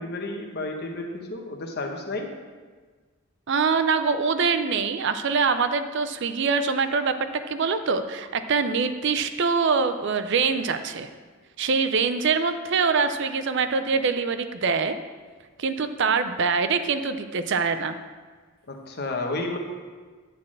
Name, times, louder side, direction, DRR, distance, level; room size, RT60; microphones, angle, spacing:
voice 1, 0.0-2.3 18.7-19.6, left 2 dB, 45° left, 2 dB, 1.1 m, -31 dB
voice 2, 3.5-7.2 7.5-11.1 11.6-15.0 15.6-18.0, right 5 dB, 55° right, 10 dB, 0.5 m, -24 dB
9.7 x 4.2 x 7.4 m, 1.5 s
head